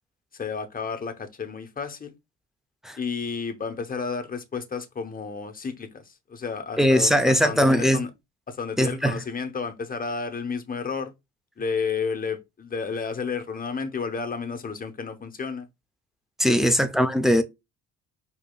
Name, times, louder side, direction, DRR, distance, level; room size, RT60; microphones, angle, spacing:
voice 1, 0.3-2.1 3.0-8.1 8.5-11.1 11.6-15.7 16.4-16.7, left 5 dB, 25° left, 0.8 m, -31 dB
voice 2, 6.8-8.0 8.8-9.1 16.4-17.4, equal, ahead, 0.5 m, -20 dB
4.8 x 2.8 x 2.2 m
cardioid pair, 95°, 37 cm